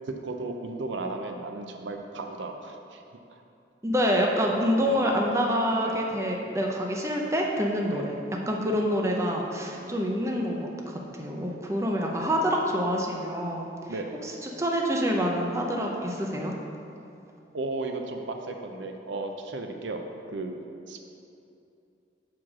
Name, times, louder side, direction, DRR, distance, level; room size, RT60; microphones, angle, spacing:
voice 1, 0.1-3.0 3.3-3.4 4.9-5.0 5.8-6.0 7.9-8.1 9.7-10.0 13.9-14.2 17.5-20.0 20.3-20.6 20.9-21.2, right 2 dB, 85° right, 4 dB, 0.6 m, -35 dB
voice 2, 3.8-8.2 8.5-13.7 14.2-16.6, equal, 15° right, 0 dB, 0.6 m, -27 dB
5.7 x 4.9 x 6.2 m, 2.7 s
head